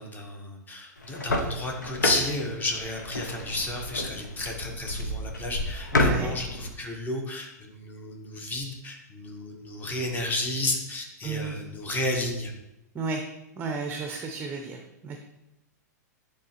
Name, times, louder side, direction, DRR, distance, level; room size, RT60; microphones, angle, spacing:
voice 1, 0.0-12.5, left 2 dB, 20° left, 2 dB, 1.2 m, -32 dB
sound 1, 1.0-6.7, left 2 dB, 90° left, 0.8 m, -30 dB
voice 2, 5.9-6.4 11.2-11.6 12.9-13.2 13.6-15.2, right 4 dB, 20° right, 3 dB, 0.6 m, -33 dB
10.0 x 3.4 x 3.0 m, 0.89 s
hypercardioid pair, 110°, 10 cm